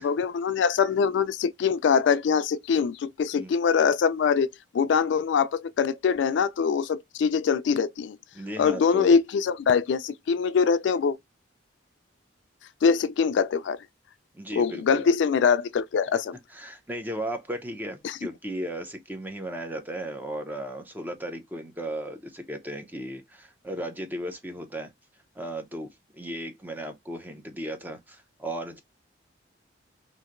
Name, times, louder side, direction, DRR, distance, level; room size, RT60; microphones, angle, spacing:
voice 1, 0.0-4.5 4.7-8.2 8.6-11.2 12.8-13.8 14.5-16.4 18.0-18.2, left 6 dB, 70° left, 0.3 m, -23 dB
voice 2, 8.3-9.2 14.3-15.1 16.5-24.9 25.4-28.8, right 1 dB, 10° right, 0.5 m, -35 dB
2.8 x 2.5 x 2.4 m
head